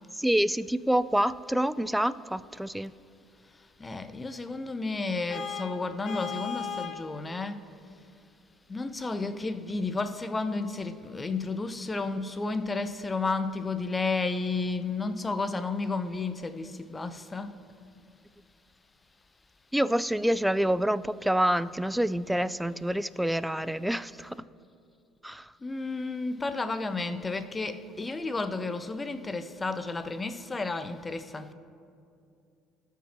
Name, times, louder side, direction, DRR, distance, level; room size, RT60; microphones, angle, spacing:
voice 1, 0.1-2.9 19.7-24.4 25.2-25.5, right 1 dB, 5° right, 17 dB, 0.3 m, -27 dB
voice 2, 3.8-7.6 8.7-17.5 25.6-31.5, left 3 dB, 20° left, 10 dB, 0.7 m, -32 dB
Vehicle horn car horn honking, 5.3-7.1, left 7 dB, 50° left, 1.0 m, -36 dB
18.0 x 6.0 x 2.9 m, 2.5 s
hypercardioid pair, 60°, 0 cm